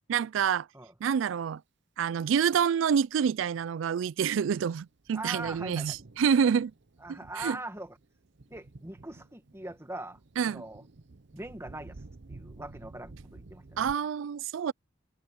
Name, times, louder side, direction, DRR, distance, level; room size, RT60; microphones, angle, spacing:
voice 1, 0.1-0.7 1.0-1.6 2.0-6.7 7.1-7.6 10.4-10.6 13.8-14.7, right 7 dB, 85° right, 0.4 m, -27 dB
Thunder, 4.2-13.9, right 2 dB, 65° right, 0.8 m, -52 dB
voice 2, 5.1-6.0 6.4-6.5 7.0-8.0 8.5-10.2 10.5-10.8 11.3-12.0 12.3-13.8, right 1 dB, 15° right, 1.9 m, -41 dB
head